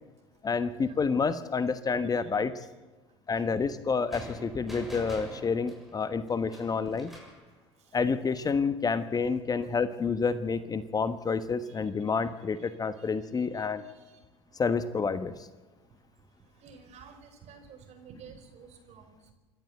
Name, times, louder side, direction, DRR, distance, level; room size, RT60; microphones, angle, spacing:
voice 1, 0.4-2.6 3.3-7.1 7.9-13.8 14.5-15.5, left 5 dB, 25° left, 13 dB, 1.1 m, -29 dB
sound 1, 4.1-7.4, equal, ahead, 7.2 m, -45 dB
voice 2, 11.7-12.1 12.6-12.7 13.0-13.1 13.3-14.2 16.6-19.3, right 6 dB, 50° right, 6 dB, 5.1 m, -52 dB
27.0 x 12.5 x 8.0 m, 1.2 s
hypercardioid pair, 75°, 15 cm